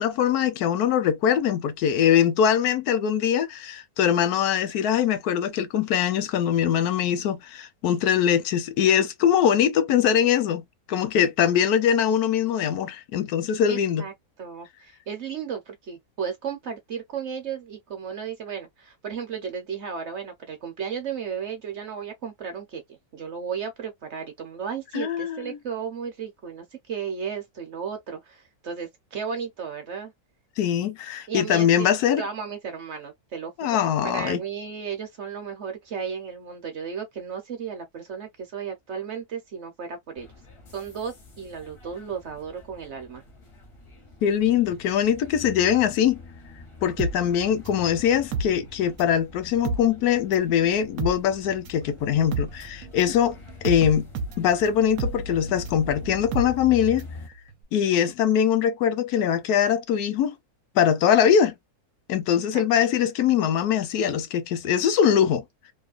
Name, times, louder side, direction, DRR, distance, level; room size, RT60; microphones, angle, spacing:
voice 1, 0.0-14.0 24.9-25.6 30.6-32.2 33.6-34.4 44.2-46.2 46.8-54.1 54.4-57.1 57.7-60.4 60.7-61.5 62.1-65.4, left 9 dB, 80° left, 1.1 m, -22 dB
voice 2, 13.7-14.1 14.4-30.1 31.3-31.9 32.2-40.3 40.7-43.2 62.5-62.6, right 7 dB, 55° right, 0.9 m, -34 dB
sound 1, 40.2-57.3, left 3 dB, 45° left, 0.4 m, -45 dB
sound 2, 47.0-49.2 49.5-57.2 57.5-57.6, right 3 dB, 75° right, 1.0 m, -32 dB
2.9 x 2.1 x 2.4 m
omnidirectional pair, 1.6 m